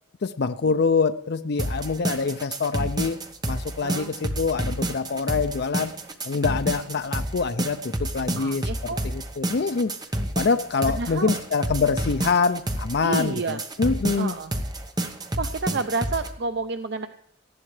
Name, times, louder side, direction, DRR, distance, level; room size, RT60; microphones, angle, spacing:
voice 1, 0.2-3.2 3.5-5.9 6.3-9.9 10.4-14.4, left 4 dB, 55° left, 0.5 m, -25 dB
sound 1, 1.6-16.3, right 1 dB, 20° right, 1.1 m, -29 dB
voice 2, 3.8-4.1 8.4-9.0 10.9-11.4 13.0-13.6 14.2-14.5 15.4-17.1, right 3 dB, 55° right, 0.6 m, -30 dB
19.0 x 14.0 x 3.3 m
head